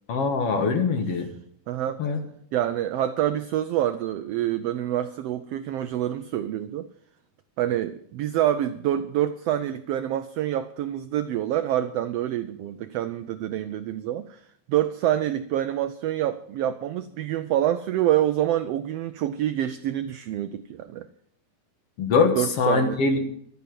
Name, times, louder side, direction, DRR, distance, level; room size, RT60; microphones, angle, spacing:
voice 1, 0.1-1.3 2.0-2.2 22.0-23.3, left 4 dB, 55° left, 2.2 m, -23 dB
voice 2, 1.7-2.0 2.5-6.9 7.6-21.1 22.3-23.0, right 12 dB, 85° right, 1.4 m, -26 dB
12.5 x 9.3 x 7.6 m
omnidirectional pair, 3.5 m